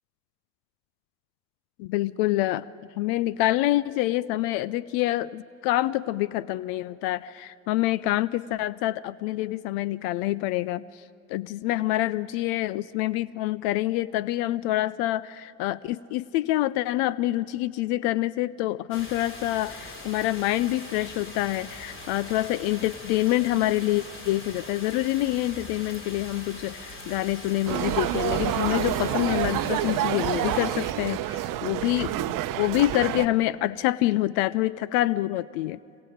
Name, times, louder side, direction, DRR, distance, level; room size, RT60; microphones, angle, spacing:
voice 1, 1.8-2.7 3.0-11.0 11.3-35.8, left 16 dB, 70° left, 20 dB, 0.5 m, -26 dB
sound 1, 18.9-30.9, left 1 dB, 30° left, 3.7 m, -42 dB
sound 2, 27.7-33.3, right 14 dB, 55° right, 0.8 m, -28 dB
26.0 x 23.5 x 5.0 m, 2.5 s
hypercardioid pair, 70°, 39 cm